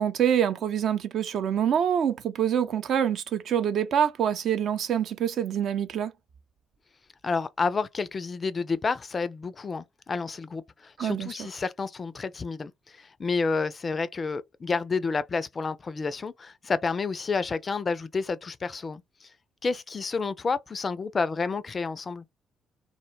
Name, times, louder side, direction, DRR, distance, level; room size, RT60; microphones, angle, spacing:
voice 1, 0.0-6.1 11.0-11.5, right 9 dB, 55° right, 0.4 m, -26 dB
voice 2, 7.2-19.3 19.6-22.2, left 4 dB, 35° left, 0.3 m, -30 dB
2.2 x 2.0 x 3.0 m
figure-of-eight pair, 45°, 0 cm